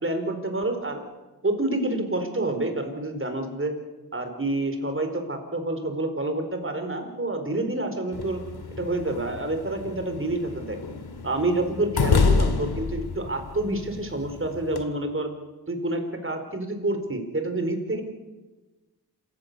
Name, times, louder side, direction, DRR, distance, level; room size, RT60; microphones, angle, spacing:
voice 1, 0.0-1.0 1.4-3.7 4.1-8.4 8.8-10.8 11.2-15.3 15.7-18.0, right 2 dB, 35° right, 6 dB, 4.6 m, -28 dB
sound 1, 8.1-14.8, left 4 dB, 85° left, 2.1 m, -28 dB
27.5 x 16.5 x 6.9 m, 1.1 s
wide cardioid pair, 75°, 38 cm